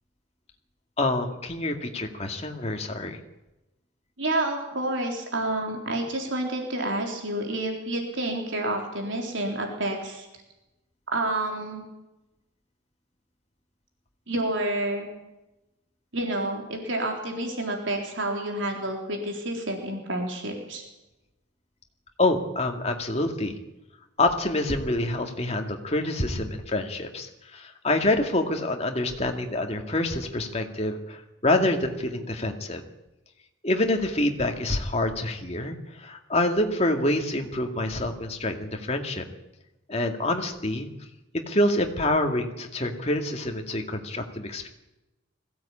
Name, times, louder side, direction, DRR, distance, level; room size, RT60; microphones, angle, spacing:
voice 1, 1.0-3.2 22.2-23.6 24.2-32.8 33.6-39.3 39.9-40.9 41.5-44.7, left 1 dB, 30° left, 3 dB, 2.3 m, -26 dB
voice 2, 4.2-10.3 11.1-11.8 14.3-15.1 16.1-20.8, right 1 dB, 70° right, 2 dB, 4.0 m, -29 dB
21.5 x 16.0 x 8.7 m, 0.98 s
head